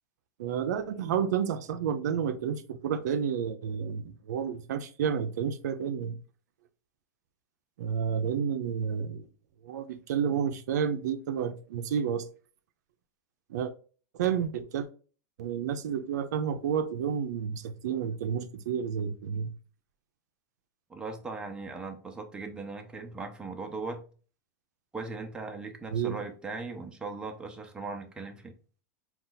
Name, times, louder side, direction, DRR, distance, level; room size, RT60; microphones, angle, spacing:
voice 1, 0.4-6.2 7.8-9.2 9.6-12.3 13.5-13.7 14.1-14.9 15.4-19.5 25.9-26.2, right 7 dB, 80° right, 0.5 m, -30 dB
voice 2, 20.9-24.0 24.9-28.5, right 3 dB, 10° right, 0.6 m, -39 dB
3.9 x 2.4 x 3.9 m
supercardioid pair, 135°, 9 cm